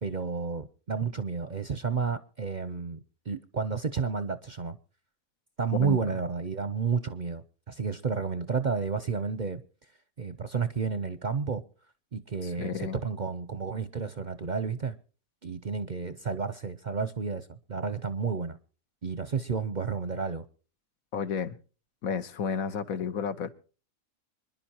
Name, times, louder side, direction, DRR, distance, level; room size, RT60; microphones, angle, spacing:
voice 1, 0.0-4.8 5.6-9.6 10.2-11.6 12.1-15.0 15.4-18.6 19.0-20.5, right 5 dB, 45° right, 0.6 m, -31 dB
voice 2, 12.6-13.0 21.1-21.5 22.0-23.5, left 6 dB, 80° left, 1.5 m, -31 dB
25.5 x 11.0 x 2.9 m
omnidirectional pair, 1.5 m